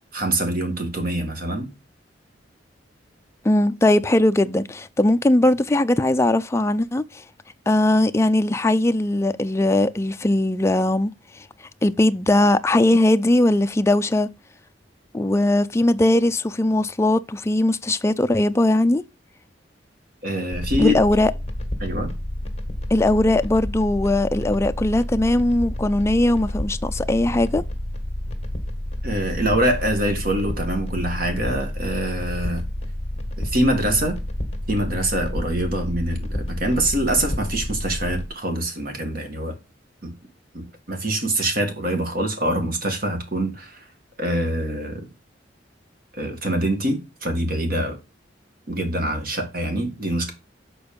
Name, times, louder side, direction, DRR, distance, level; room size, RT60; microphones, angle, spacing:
voice 1, 0.1-1.7 20.2-21.0 21.8-22.1 29.0-32.6 33.4-34.2 34.7-39.6 40.0-40.1 40.5-43.9 44.2-45.1 46.1-48.0 48.7-50.3, right 1 dB, 55° right, 1.9 m, -24 dB
voice 2, 3.4-7.2 7.7-11.1 11.8-14.3 15.1-19.0 20.8-21.3 22.9-27.6, left 1 dB, 15° left, 0.4 m, -19 dB
sound 1, 20.5-38.3, left 1 dB, 35° left, 1.6 m, -30 dB
6.9 x 4.4 x 5.2 m
head